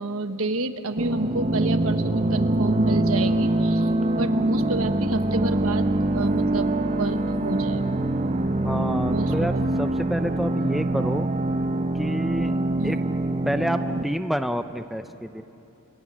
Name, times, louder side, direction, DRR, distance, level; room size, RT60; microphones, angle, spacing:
voice 1, 0.0-5.9 6.1-6.7 7.0-8.0 9.1-9.7 12.8-13.0, right 2 dB, 70° right, 8 dB, 1.3 m, -29 dB
sound 1, 1.0-14.0, right 1 dB, 35° right, 1.0 m, -24 dB
voice 2, 8.6-11.3 12.0-12.5 12.8-13.0 13.4-15.4, equal, ahead, 8 dB, 0.6 m, -28 dB
30.0 x 27.0 x 6.2 m, 3.0 s
head